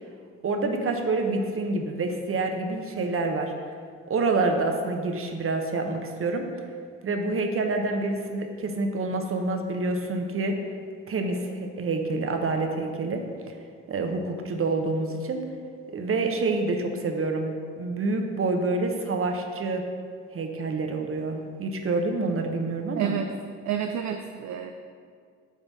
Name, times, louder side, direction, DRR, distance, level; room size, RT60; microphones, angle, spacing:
voice 1, 0.4-3.5 4.1-6.4 7.0-10.6 11.1-13.5 13.9-15.4 15.9-19.9 20.3-23.1, right 3 dB, 40° right, 4 dB, 0.9 m, -27 dB
voice 2, 23.0-23.3 23.7-24.7, right 8 dB, 55° right, 5 dB, 0.5 m, -29 dB
5.5 x 3.9 x 6.0 m, 2.1 s
hypercardioid pair, 50°, 35 cm